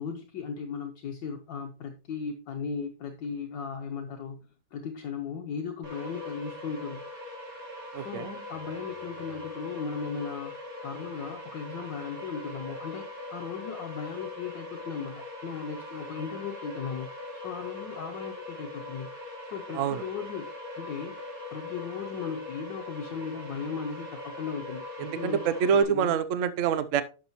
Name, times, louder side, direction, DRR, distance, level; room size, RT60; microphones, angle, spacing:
voice 1, 0.0-4.4 4.7-7.0 8.0-10.6 10.8-17.1 17.4-19.1 19.4-20.5 20.8-21.2 21.5-26.2, left 6 dB, 70° left, 3 dB, 1.4 m, -37 dB
sound 1, 5.8-25.8, left 2 dB, 45° right, 3.0 m, -41 dB
voice 2, 7.9-8.3 19.8-20.0 25.0-27.0, right 7 dB, 80° right, 13 dB, 0.7 m, -26 dB
11.0 x 7.0 x 3.0 m, 0.33 s
omnidirectional pair, 2.2 m